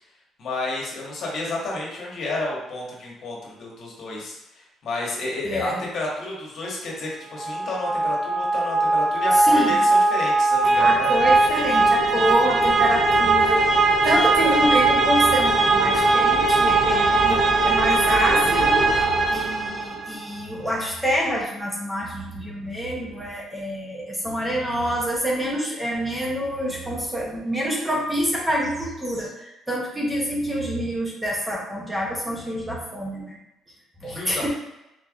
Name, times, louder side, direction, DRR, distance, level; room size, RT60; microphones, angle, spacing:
voice 1, 0.4-4.4 4.8-9.8 10.1-11.1 34.0-34.5, left 2 dB, 55° left, -3 dB, 1.2 m, -31 dB
voice 2, 5.4-5.8 9.3-9.8 10.8-13.6 14.0-33.4 34.0-34.5, equal, 5° right, -4 dB, 0.8 m, -27 dB
sound 1, 7.3-20.1, right 3 dB, 40° right, 0.4 m, -19 dB
4.0 x 3.3 x 2.4 m, 0.92 s
cardioid pair, 130°, 0 cm